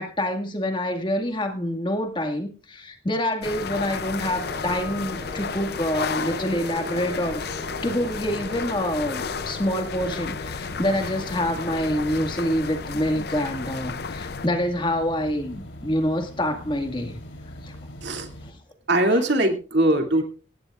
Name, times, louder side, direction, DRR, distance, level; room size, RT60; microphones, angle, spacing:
voice 1, 0.0-17.2 17.6-17.8 18.4-18.5 19.1-19.2, left 1 dB, 25° left, 5 dB, 1.9 m, -26 dB
sound 1, 3.4-14.5, left 5 dB, 55° left, 0.6 m, -33 dB
sound 2, 4.1-14.2, left 1 dB, 25° right, 7.1 m, -41 dB
sound 3, 9.9-18.5, equal, 90° left, 3.7 m, -41 dB
voice 2, 18.9-20.2, right 1 dB, 65° right, 4 dB, 2.6 m, -21 dB
18.5 x 16.5 x 2.5 m, 0.36 s
head